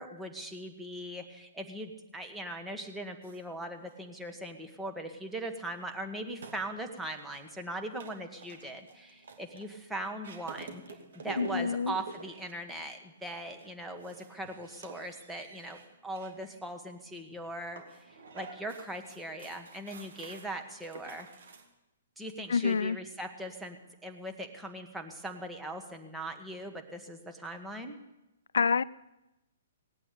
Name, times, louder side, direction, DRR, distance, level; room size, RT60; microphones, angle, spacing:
voice 1, 0.0-10.8 11.1-21.3 22.2-28.0, right 1 dB, 5° right, 1.7 m, -40 dB
sound 1, 3.2-21.6, right 3 dB, 70° right, 2.4 m, -50 dB
voice 2, 11.4-11.9 22.5-23.0 28.5-28.8, left 5 dB, 75° left, 0.5 m, -27 dB
18.5 x 8.5 x 8.7 m
hypercardioid pair, 135°, 0 cm